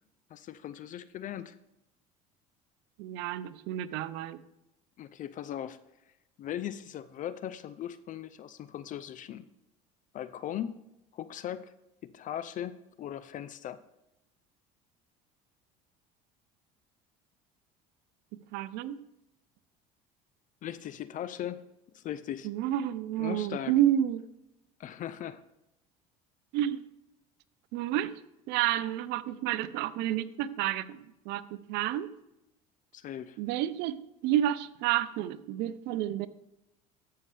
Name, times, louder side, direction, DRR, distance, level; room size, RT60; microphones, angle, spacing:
voice 1, 0.3-1.6 5.0-5.8 6.4-9.5 10.1-10.7 11.1-11.7 12.0-13.8 20.6-21.6 21.9-22.5 23.2-23.7 24.8-25.4 32.9-33.4, left 10 dB, 45° left, 14 dB, 0.5 m, -38 dB
voice 2, 3.0-4.4 18.5-19.0 22.4-24.3 26.5-26.8 27.7-28.1 28.5-32.1 33.4-36.3, right 12 dB, 70° right, 15 dB, 0.6 m, -30 dB
14.0 x 5.6 x 3.3 m, 0.88 s
supercardioid pair, 90°, 18 cm